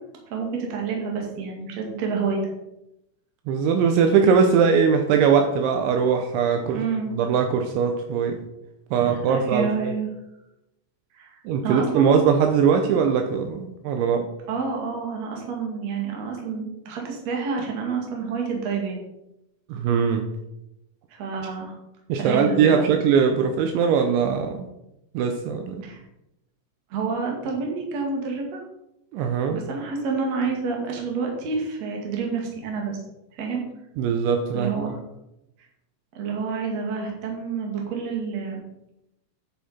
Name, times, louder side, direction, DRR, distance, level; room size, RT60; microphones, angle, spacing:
voice 1, 0.3-2.5 6.7-7.1 9.0-10.1 11.1-12.1 14.5-19.0 21.1-21.8 22.2-22.9 25.8-26.0 26.9-28.6 29.5-33.0 33.3-33.6 34.5-35.0 36.1-38.6, right 5 dB, 45° right, 0 dB, 2.5 m, -28 dB
voice 2, 3.5-6.8 7.1-8.4 8.9-9.9 11.5-14.3 19.7-20.3 22.1-24.7 25.1-25.8 29.1-29.6 34.0-34.7, right 6 dB, 80° right, 5 dB, 3.0 m, -21 dB
10.0 x 8.1 x 4.3 m, 0.87 s
omnidirectional pair, 5.6 m